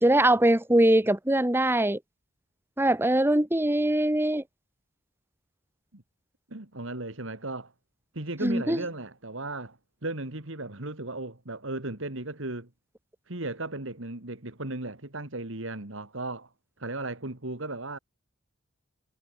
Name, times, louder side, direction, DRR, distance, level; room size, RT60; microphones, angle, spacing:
voice 1, 0.0-2.0 2.8-4.4 8.4-8.8, right 1 dB, 10° right, 1.1 m, -22 dB
voice 2, 6.5-7.7 8.1-12.7 13.3-16.5 16.8-18.0, right 2 dB, 65° right, 2.6 m, -36 dB
head